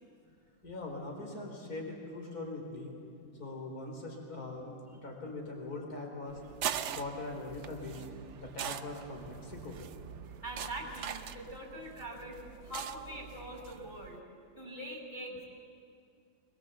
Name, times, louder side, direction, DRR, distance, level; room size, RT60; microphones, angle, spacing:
voice 1, 0.6-2.9 3.4-6.4 7.0-8.1 8.4-9.8, left 2 dB, 50° left, 1 dB, 4.1 m, -41 dB
sound 1, 6.3-14.2, right 9 dB, 80° right, 0.6 m, -42 dB
voice 2, 10.4-14.2 14.6-15.4, right 1 dB, 25° left, -1 dB, 5.8 m, -43 dB
24.0 x 21.5 x 7.9 m, 2.4 s
omnidirectional pair, 2.1 m